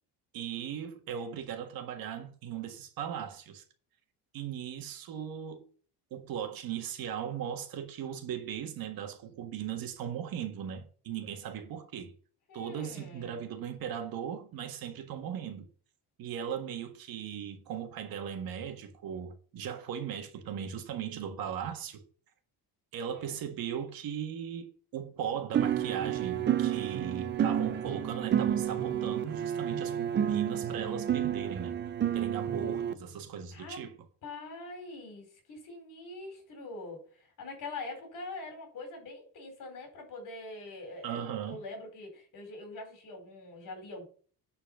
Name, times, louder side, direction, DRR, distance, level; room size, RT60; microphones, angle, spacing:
voice 1, 0.3-3.6 4.3-5.7 6.1-12.1 12.5-15.7 16.2-22.0 22.9-31.7 32.1-33.9 41.0-41.6, right 8 dB, 60° right, 1.7 m, -38 dB
voice 2, 12.5-13.4 23.1-23.4 33.5-33.8 34.2-44.0, left 2 dB, 50° left, 4.5 m, -44 dB
sound 1, 25.5-32.9, right 9 dB, 30° right, 0.5 m, -30 dB
10.5 x 4.6 x 6.7 m
cardioid pair, 160°, 40 cm